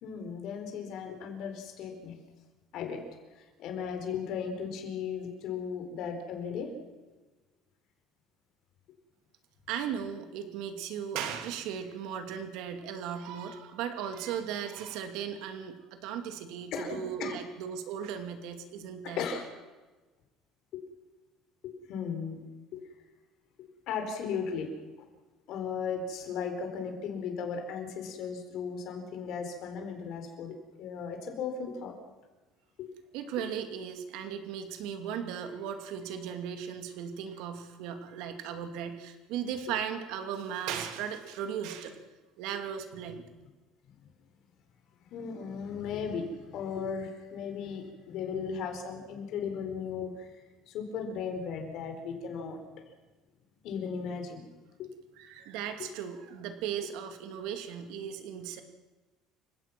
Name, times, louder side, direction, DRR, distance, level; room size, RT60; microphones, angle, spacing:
voice 1, 0.0-2.2 2.7-3.0 3.4-6.7 16.7-17.4 19.0-19.5 20.7-20.8 21.6-22.4 22.7-22.8 23.6-24.8 25.5-31.9 32.8-32.9 45.1-50.3 50.7-52.6 53.6-54.4 54.8-54.9, left 6 dB, 50° left, 4 dB, 4.4 m, -36 dB
voice 2, 9.7-19.2 33.1-42.0 42.4-43.2 55.2-58.6, right 8 dB, 70° right, 7 dB, 2.4 m, -37 dB
29.0 x 16.5 x 6.1 m, 1.2 s
cardioid pair, 170°, 0 cm